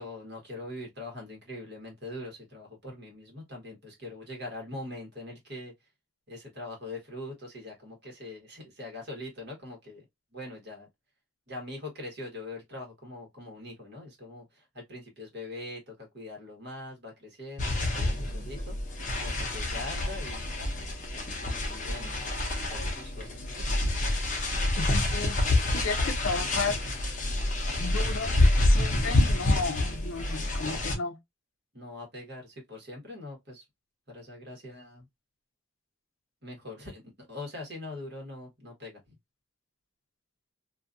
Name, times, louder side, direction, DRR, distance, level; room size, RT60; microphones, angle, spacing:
voice 1, 0.0-5.7 6.3-10.0 10.3-10.9 11.5-18.8 19.2-20.5 21.1-22.1 22.7-23.7 31.7-33.6 34.1-35.1 36.4-39.2, left 2 dB, 50° right, 1.3 m, -42 dB
sound 1, 17.6-30.9, left 1 dB, 35° left, 0.7 m, -27 dB
voice 2, 24.8-25.4 25.7-26.8 27.8-31.2, left 4 dB, 70° left, 0.5 m, -34 dB
2.6 x 2.5 x 2.4 m
head